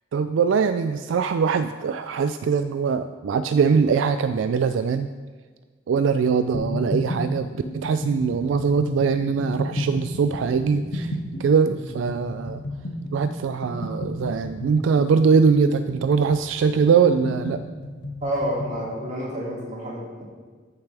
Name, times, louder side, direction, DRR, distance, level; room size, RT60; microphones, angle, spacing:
voice 1, 0.1-5.1 5.9-12.6 13.1-17.6, right 5 dB, 80° right, 10 dB, 0.3 m, -22 dB
sound 1, 6.5-18.8, left 1 dB, 80° left, 1.5 m, -32 dB
voice 2, 18.2-20.2, equal, 40° right, -5 dB, 2.7 m, -29 dB
14.0 x 6.7 x 3.4 m, 1.5 s
head